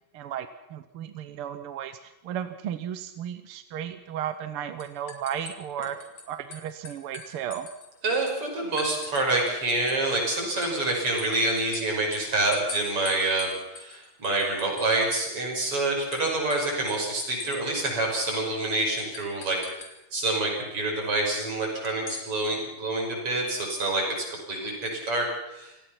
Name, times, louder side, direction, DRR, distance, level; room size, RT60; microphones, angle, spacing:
voice 1, 0.1-6.0 6.3-7.7, right 9 dB, 65° right, 10 dB, 1.5 m, -34 dB
sound 1, 4.2-4.5 4.8-6.2 6.5-8.2 8.8-9.6 9.9-15.4 15.7-15.8 16.1-17.6 17.9-18.0 18.3-18.5 19.1-19.9 21.8-22.3, left 4 dB, 60° left, 4.0 m, -42 dB
voice 2, 8.0-19.8 20.1-24.0 24.5-25.7, right 2 dB, 45° right, 0 dB, 6.8 m, -27 dB
28.0 x 18.0 x 5.9 m, 0.90 s
omnidirectional pair, 3.4 m